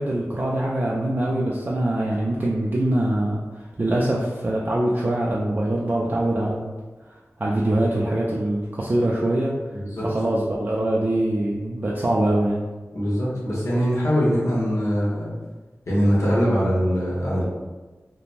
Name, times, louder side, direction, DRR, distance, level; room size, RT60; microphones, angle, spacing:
voice 1, 0.0-6.8 7.4-9.6 10.0-12.6, right 1 dB, 40° right, -5 dB, 0.3 m, -23 dB
voice 2, 9.7-10.1 12.9-15.3 15.9-17.4, equal, 75° left, -7 dB, 0.9 m, -22 dB
3.1 x 2.1 x 2.4 m, 1.2 s
wide cardioid pair, 60°, 5 cm